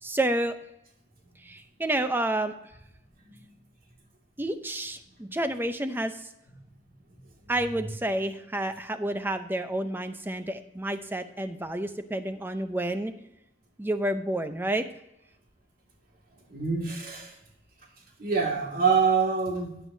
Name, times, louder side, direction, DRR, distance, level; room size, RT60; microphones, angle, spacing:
voice 1, 0.0-0.5 1.4-2.5 4.4-6.3 7.5-13.1 13.8-14.8, right 1 dB, 10° right, 9 dB, 0.6 m, -29 dB
voice 2, 16.5-17.3 18.2-19.7, right 5 dB, 50° right, 0 dB, 2.2 m, -26 dB
13.5 x 9.1 x 2.7 m, 0.83 s
head